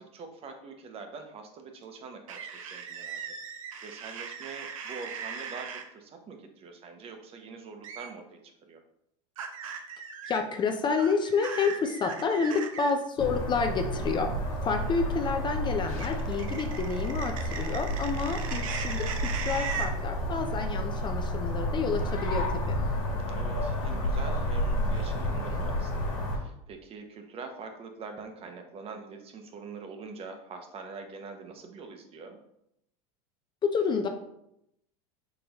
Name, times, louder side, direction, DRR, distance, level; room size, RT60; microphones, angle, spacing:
voice 1, 0.0-8.8 14.8-15.0 18.3-18.7 23.1-32.4, right 4 dB, 35° right, 5 dB, 0.7 m, -44 dB
sound 1, 2.3-5.8 7.8-8.1 9.4-10.4 11.0-12.9 16.0-19.9, right 6 dB, 90° right, 0.6 m, -38 dB
voice 2, 10.3-14.3 14.6-22.8 33.6-34.1, left 5 dB, 25° left, 5 dB, 0.4 m, -29 dB
sound 2, 13.2-26.4, equal, 85° left, 1.4 m, -31 dB
3.9 x 3.8 x 2.8 m, 0.78 s
supercardioid pair, 110°, 17 cm